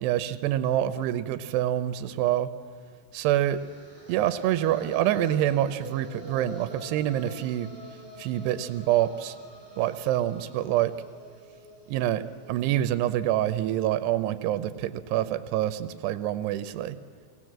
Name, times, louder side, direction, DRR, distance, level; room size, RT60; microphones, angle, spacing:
voice 1, 0.0-2.5 3.1-3.6 4.1-7.7 8.2-9.4 9.8-10.9 11.9-12.2 12.5-17.0, right 12 dB, 85° right, 11 dB, 2.8 m, -26 dB
sound 1, 3.6-13.6, equal, 5° left, 4.0 m, -46 dB
23.0 x 18.0 x 7.5 m, 2.2 s
omnidirectional pair, 4.7 m